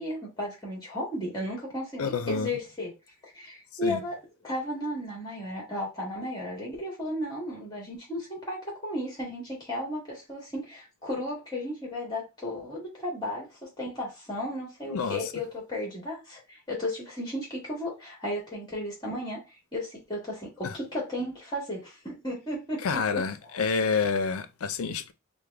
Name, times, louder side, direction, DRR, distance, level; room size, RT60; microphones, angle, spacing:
voice 1, 0.0-2.9 3.2-4.2 4.4-19.4 19.7-23.7, left 1 dB, 20° left, 1.4 m, -34 dB
voice 2, 2.0-2.5 3.8-4.0 14.9-15.2 20.6-20.7 22.8-25.1, left 5 dB, 80° left, 0.5 m, -28 dB
3.2 x 2.1 x 3.4 m
head